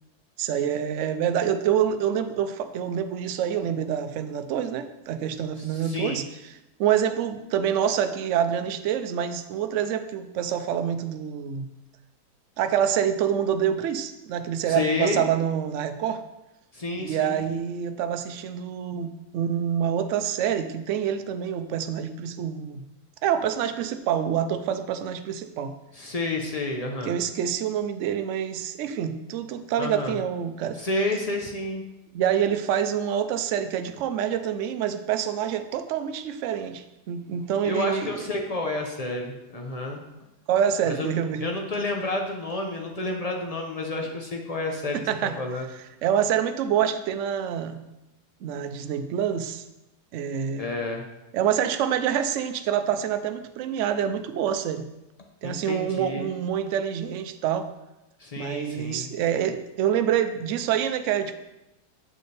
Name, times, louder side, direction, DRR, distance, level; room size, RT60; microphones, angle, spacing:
voice 1, 0.4-6.2 6.8-11.7 12.6-16.2 17.0-22.8 23.2-25.8 27.1-30.8 32.1-38.2 40.5-41.4 44.9-45.4 46.0-47.8 48.4-49.6 50.1-50.6 51.3-54.9 55.4-57.7 58.4-61.3, right 9 dB, 70° right, 9 dB, 0.7 m, -26 dB
voice 2, 5.6-6.2 14.7-15.3 16.7-17.4 25.9-27.2 29.8-30.2 30.7-31.8 37.6-40.0 40.8-41.1 41.4-45.0 45.4-45.7 50.6-51.0 55.4-56.3 58.2-59.1, left 2 dB, 65° left, 1 dB, 0.3 m, -30 dB
7.6 x 6.8 x 3.3 m, 0.95 s
omnidirectional pair, 1.7 m